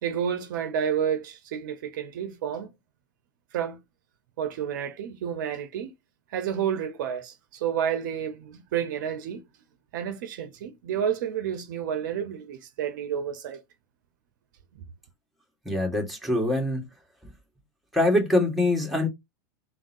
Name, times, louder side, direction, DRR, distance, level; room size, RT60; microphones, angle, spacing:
voice 1, 0.0-2.7 3.5-3.8 4.4-5.9 6.3-9.4 9.9-13.6, right 8 dB, 65° right, 0.7 m, -30 dB
voice 2, 15.6-16.9 17.2-17.3 17.9-19.1, left 1 dB, ahead, 1.5 m, -24 dB
3.6 x 2.0 x 2.6 m
hypercardioid pair, 95°, 11 cm